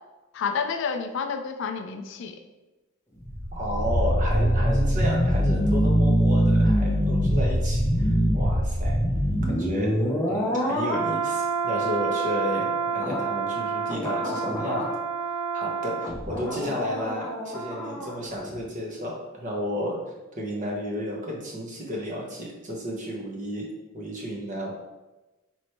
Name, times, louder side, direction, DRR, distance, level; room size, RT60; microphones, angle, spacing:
voice 1, 0.3-2.4, left 6 dB, 60° left, 7 dB, 0.3 m, -29 dB
sound 1, 3.2-18.2 18.4-18.6, right 1 dB, 15° left, 0.7 m, -24 dB
voice 2, 3.5-9.0 9.4-9.9 10.3-15.0 15.5-20.0 20.4-23.7 23.9-24.7, equal, 35° right, -2 dB, 0.9 m, -32 dB
3.1 x 3.0 x 4.4 m, 1.1 s
head